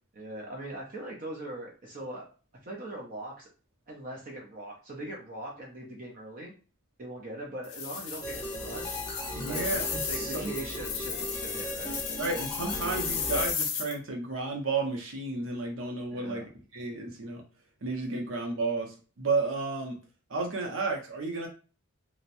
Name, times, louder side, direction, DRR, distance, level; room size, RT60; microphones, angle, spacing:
voice 1, 0.1-2.2 2.6-3.5 3.9-6.5 7.0-9.7 10.1-12.2 16.1-16.4, right 1 dB, 40° right, -1 dB, 0.6 m, -41 dB
sound 1, 7.6-13.9, left 6 dB, 85° left, 0.6 m, -35 dB
sound 2, 8.2-13.5, equal, 20° left, 0.6 m, -37 dB
voice 2, 9.3-10.5 12.2-16.4 16.7-17.4 17.8-20.0 20.3-21.5, right 3 dB, 75° right, 1 dB, 0.7 m, -32 dB
2.9 x 2.0 x 2.6 m, 0.36 s
head